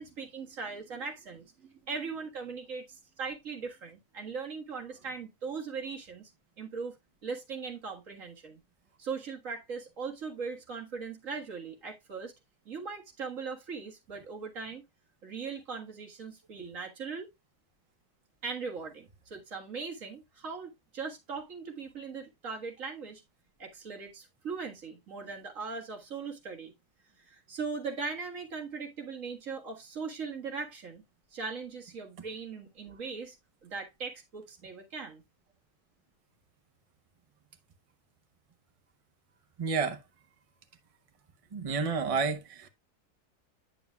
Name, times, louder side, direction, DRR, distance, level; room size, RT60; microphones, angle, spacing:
voice 1, 0.0-6.3 6.6-7.0 7.2-8.6 9.0-12.3 12.7-14.8 15.2-17.3 18.4-23.2 23.6-26.7 27.2-31.0 31.3-33.4 33.6-35.2, right 5 dB, 55° right, 1.9 m, -39 dB
voice 2, 39.6-40.0 41.5-42.7, right 5 dB, 30° right, 0.6 m, -30 dB
9.1 x 7.1 x 2.3 m
omnidirectional pair, 1.7 m